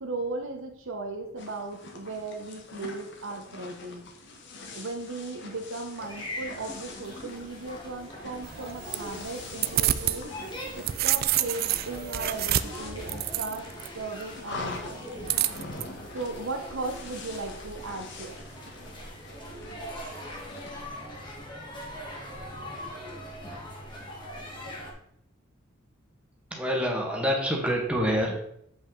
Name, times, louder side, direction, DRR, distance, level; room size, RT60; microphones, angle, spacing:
voice 1, 0.0-4.1 4.7-10.3 10.7-13.7 13.9-15.4 16.1-18.4, right 3 dB, 70° right, 4 dB, 1.0 m, -37 dB
sound 1, 1.4-20.8, left 2 dB, 60° left, 1.2 m, -44 dB
sound 2, 6.0-24.9, equal, 25° left, 1.7 m, -42 dB
sound 3, 8.4-10.2 10.6-13.9 15.3-15.8, right 13 dB, 50° right, 0.3 m, -28 dB
voice 2, 26.5-28.4, equal, 5° right, -1 dB, 1.5 m, -26 dB
8.1 x 5.2 x 3.9 m, 0.72 s
head